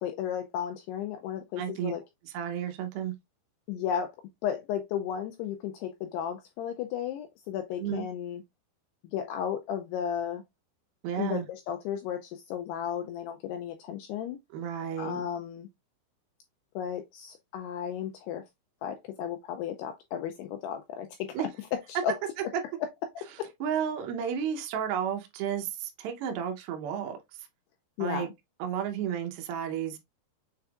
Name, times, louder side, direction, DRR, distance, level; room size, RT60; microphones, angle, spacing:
voice 1, 0.0-2.0 3.7-4.1 4.4-8.4 9.0-10.4 11.2-14.4 15.0-15.7 16.8-18.4 18.8-21.4 21.7-22.2 22.8-22.9 23.4-23.5 28.0-28.3, left 9 dB, 90° left, 2.3 m, -34 dB
voice 2, 1.6-1.9 2.3-3.1 7.8-8.1 11.0-11.5 14.5-15.2 21.3-21.5 23.6-27.2 28.0-28.3 28.6-30.0, right 8 dB, 80° right, 2.2 m, -32 dB
6.7 x 3.5 x 2.3 m
omnidirectional pair, 5.2 m